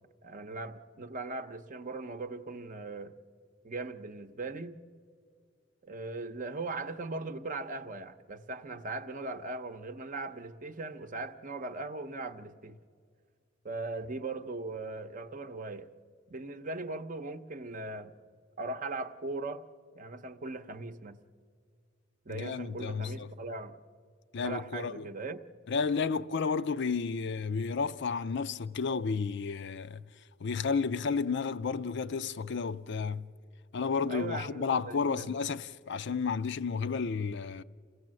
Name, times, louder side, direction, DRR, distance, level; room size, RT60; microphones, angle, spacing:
voice 1, 0.2-3.1 3.6-4.8 5.8-12.8 13.6-15.9 16.3-18.1 18.6-19.6 19.9-21.2 22.3-23.8 24.4-25.4 34.1-35.4, right 3 dB, 40° right, 0.8 m, -39 dB
voice 2, 22.3-23.3 24.3-25.1 25.7-30.0 30.4-33.3 33.7-37.6, left 5 dB, 60° left, 0.5 m, -32 dB
28.5 x 16.0 x 7.6 m
head